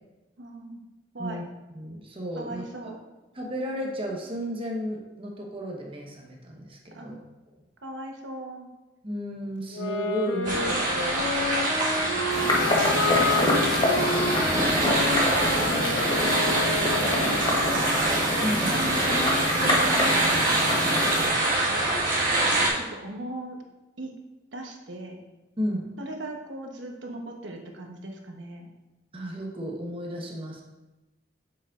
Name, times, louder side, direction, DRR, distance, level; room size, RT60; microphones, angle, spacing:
voice 1, 0.4-0.9 1.1-1.4 2.3-3.0 6.9-7.2 7.8-8.7 12.3-13.4 15.1-15.7 17.0-17.9 18.2-20.4 21.6-22.0 22.6-23.6 24.0-24.1 24.5-25.2 26.0-28.7, right 1 dB, 85° right, 2 dB, 1.0 m, -38 dB
voice 2, 1.7-2.6 3.3-7.2 9.0-11.2 18.4-18.7 25.6-25.8 29.1-30.6, equal, 30° right, 0 dB, 1.1 m, -34 dB
sound 1, 9.7-17.6, left 3 dB, 80° left, 0.8 m, -30 dB
sound 2, 10.4-22.7, right 2 dB, 50° right, 1.6 m, -25 dB
sound 3, 12.3-21.3, left 1 dB, 25° left, 1.1 m, -26 dB
7.2 x 6.2 x 2.5 m, 1.1 s
head